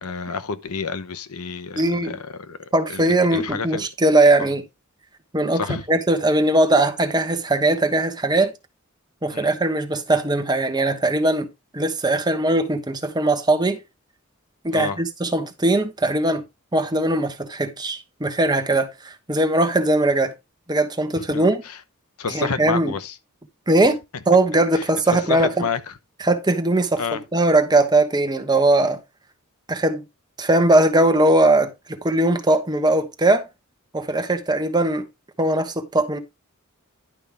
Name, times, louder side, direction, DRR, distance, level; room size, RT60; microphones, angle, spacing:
voice 1, 0.0-2.6 2.9-3.9 5.5-5.8 9.3-9.5 14.7-15.0 21.3-21.8 22.2-23.2 24.7-25.9 27.0-27.2, left 5 dB, 85° left, 0.9 m, -29 dB
voice 2, 1.7-2.2 2.7-4.6 5.3-8.5 9.2-11.5 11.7-13.8 14.6-16.4 16.7-20.3 20.7-21.6 22.3-22.9 23.7-24.0 24.3-25.7 26.2-27.0 27.3-29.0 29.7-30.0 30.4-33.5 33.9-35.1 35.4-36.2, right 2 dB, 20° right, 1.2 m, -20 dB
11.0 x 5.4 x 3.4 m
head